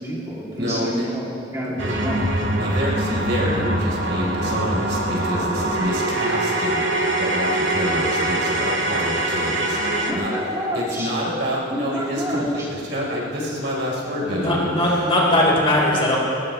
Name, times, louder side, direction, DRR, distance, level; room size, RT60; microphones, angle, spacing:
voice 1, 0.0-2.2 10.0-11.1 11.7-12.7, equal, 15° right, -6 dB, 3.0 m, -28 dB
voice 2, 0.5-1.1 2.6-10.3 10.7-15.1, equal, 65° right, -4 dB, 4.3 m, -27 dB
sound 1, 1.8-10.1, right 1 dB, 85° right, 2.0 m, -23 dB
voice 3, 14.2-16.2, left 1 dB, 30° left, -4 dB, 4.5 m, -19 dB
21.5 x 20.0 x 3.3 m, 2.8 s
head